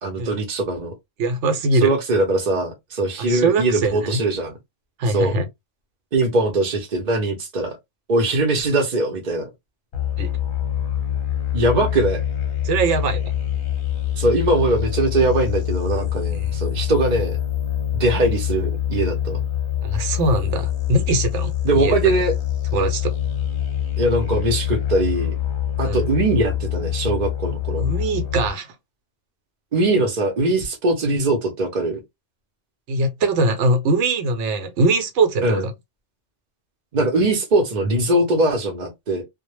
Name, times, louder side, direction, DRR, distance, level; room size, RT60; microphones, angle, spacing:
voice 1, 0.0-0.9 1.7-4.6 5.0-5.3 6.1-7.8 8.1-9.5 11.5-12.2 14.2-17.4 18.0-19.4 21.6-22.3 24.0-25.3 25.8-27.9 29.7-32.0 35.4-35.6 36.9-39.2, right 2 dB, 50° right, 0.6 m, -21 dB
voice 2, 1.2-1.9 3.2-4.2 5.0-5.5 10.2-10.3 12.6-13.3 16.4-16.5 19.8-22.1 22.7-23.1 25.8-26.1 27.8-28.7 32.9-35.7, right 2 dB, 80° right, 0.9 m, -22 dB
sound 1, 9.9-28.5, left 10 dB, 55° left, 0.7 m, -25 dB
2.1 x 2.0 x 3.0 m
omnidirectional pair, 1.2 m